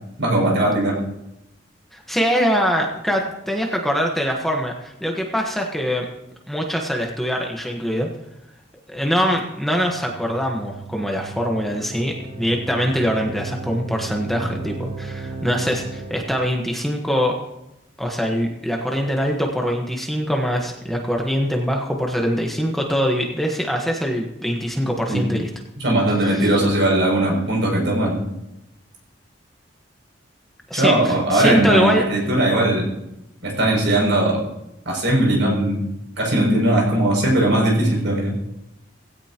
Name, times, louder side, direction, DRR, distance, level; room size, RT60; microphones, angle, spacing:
voice 1, 0.2-1.0 25.1-25.3 25.8-28.2 30.7-32.8 33.4-34.4 34.8-35.8 36.2-38.3, right 1 dB, 65° right, -2 dB, 6.8 m, -19 dB
voice 2, 1.9-6.0 6.5-8.1 8.9-17.3 18.0-25.5 26.3-26.5 30.7-32.0, equal, ahead, 0 dB, 1.3 m, -23 dB
sound 1, 9.6-16.5, right 3 dB, 45° right, 2.7 m, -35 dB
17.5 x 16.5 x 3.0 m, 0.88 s
head